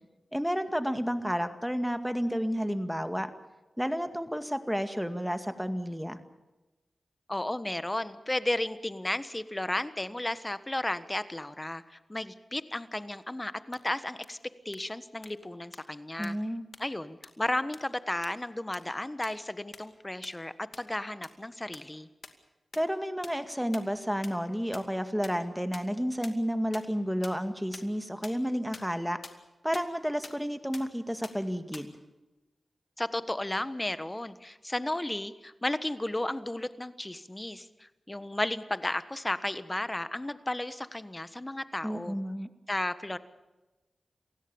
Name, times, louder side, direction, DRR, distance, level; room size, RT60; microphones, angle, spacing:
voice 1, 0.3-3.3 3.8-6.2 16.2-16.7 22.7-29.2 29.6-31.9 41.8-42.5, equal, ahead, 8 dB, 2.0 m, -31 dB
voice 2, 7.3-14.4 14.6-16.4 16.8-22.1 33.0-42.2 42.7-43.2, left 1 dB, 20° left, 13 dB, 1.3 m, -34 dB
sound 1, 13.7-13.8 14.2-14.3 14.7-14.8 15.2-15.3 15.7-15.8 16.2-16.3 16.7-16.8 17.2-17.3 17.7-17.8 18.2-18.3 18.7-18.8 19.2-19.3 19.7-19.8 20.2-20.3 20.7-20.8 21.2-21.3 21.7-21.8 22.2-22.3 22.7-22.8 23.2-23.3 23.7-23.8 24.2-24.3 24.7-24.8 25.2-25.3 25.7-25.8 26.2-26.3 26.7-26.8 27.2-27.3 27.7-27.8 28.2-28.3 28.7-28.8 29.2-29.3 29.7-29.8 30.2-30.3 30.7-30.8 31.2-31.3 31.7-31.8, left 4 dB, 60° left, 2.4 m, -43 dB
28.0 x 16.5 x 7.1 m, 1.1 s
cardioid pair, 55°, 0 cm